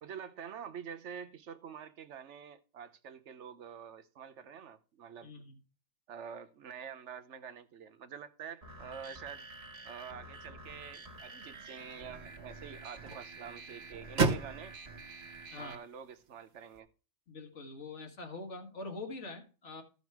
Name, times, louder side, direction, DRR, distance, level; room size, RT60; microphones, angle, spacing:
voice 1, 0.0-5.3 6.1-9.4 9.8-14.7 15.6-16.9, right 7 dB, 75° right, 1.1 m, -47 dB
voice 2, 5.2-5.6 15.5-15.8 17.3-19.8, left 3 dB, 80° left, 1.8 m, -44 dB
sound 1, 8.6-15.8, right 3 dB, 60° right, 1.9 m, -49 dB
sound 2, 10.6-16.8, right 4 dB, 40° right, 1.1 m, -38 dB
14.0 x 5.4 x 4.7 m
omnidirectional pair, 1.2 m